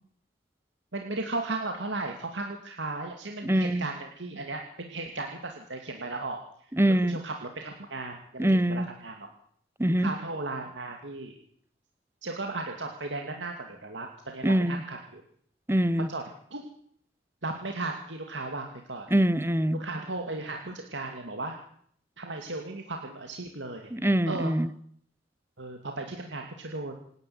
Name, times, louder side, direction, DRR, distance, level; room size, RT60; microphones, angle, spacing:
voice 1, 0.9-6.4 7.0-9.3 10.0-11.3 12.2-15.2 16.1-16.2 16.5-16.7 17.4-19.1 19.8-21.6 22.2-23.9 24.3-24.5 25.6-27.0, right 2 dB, 75° right, 3 dB, 2.6 m, -36 dB
voice 2, 3.4-3.9 6.8-7.2 8.4-8.9 9.8-10.1 14.4-14.8 15.7-16.1 19.1-19.8 23.9-24.7, right 1 dB, 15° right, 17 dB, 0.9 m, -24 dB
26.5 x 11.0 x 9.5 m, 0.63 s
head